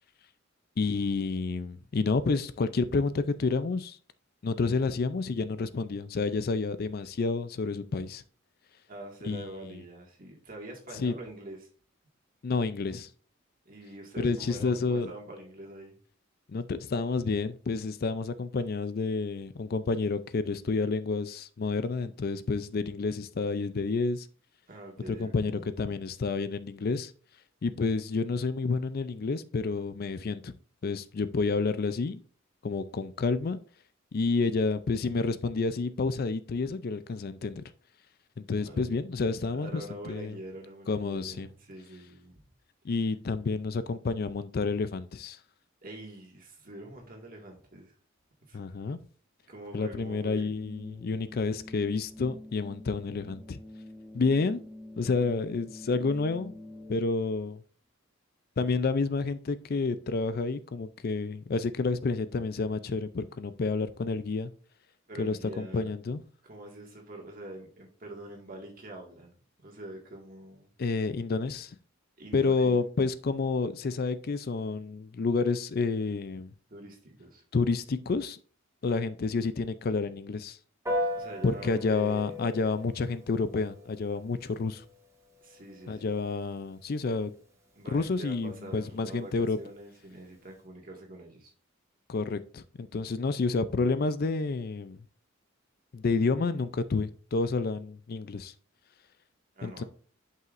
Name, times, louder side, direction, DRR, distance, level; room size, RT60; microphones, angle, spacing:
voice 1, 0.8-4.0 4.4-8.2 9.2-9.7 11.0-11.1 12.4-13.1 14.2-15.1 16.5-24.3 25.1-27.1 27.6-30.5 30.8-32.2 32.6-33.6 34.1-37.6 38.4-40.4 40.9-41.5 42.8-45.4 48.5-49.0 49.7-53.6 54.1-54.6 55.0-56.5 56.9-57.6 58.6-64.5 65.2-66.2 70.8-71.8 72.3-76.5 77.5-78.4 78.8-80.6 81.4-84.8 85.9-87.3 87.9-89.6 92.1-95.0 95.9-98.5 99.6-99.8, left 4 dB, 50° left, 13 dB, 0.4 m, -29 dB
voice 2, 8.9-11.7 13.7-15.9 24.7-25.6 38.6-38.9 39.6-42.4 43.0-43.1 45.8-47.9 48.4-48.6 49.5-50.5 65.1-65.9 66.4-70.7 72.2-72.8 76.7-77.4 81.1-82.4 85.4-86.2 87.7-91.5 99.6-99.8, right 1 dB, 45° right, 0 dB, 1.9 m, -45 dB
sound 1, 50.5-57.0, left 1 dB, 10° left, 0.6 m, -46 dB
Piano, 80.9-90.6, left 1 dB, 15° right, 1.7 m, -40 dB
11.0 x 5.6 x 2.5 m, 0.43 s
head